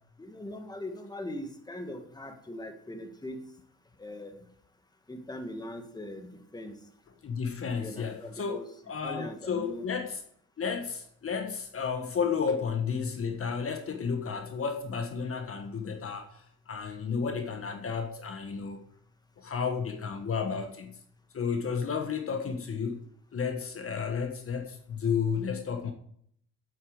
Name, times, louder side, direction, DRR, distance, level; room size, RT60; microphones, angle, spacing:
voice 1, 0.2-3.5 4.0-4.5 5.1-6.8 7.8-8.7 9.0-9.9, left 1 dB, 15° left, 6 dB, 1.9 m, -40 dB
voice 2, 7.2-8.6 8.9-10.2 10.6-16.4 16.7-18.8 19.4-21.0 21.3-23.0 23.3-25.9, left 6 dB, 45° left, 6 dB, 1.5 m, -32 dB
8.6 x 8.6 x 7.9 m, 0.67 s
cardioid pair, 90°, 30 cm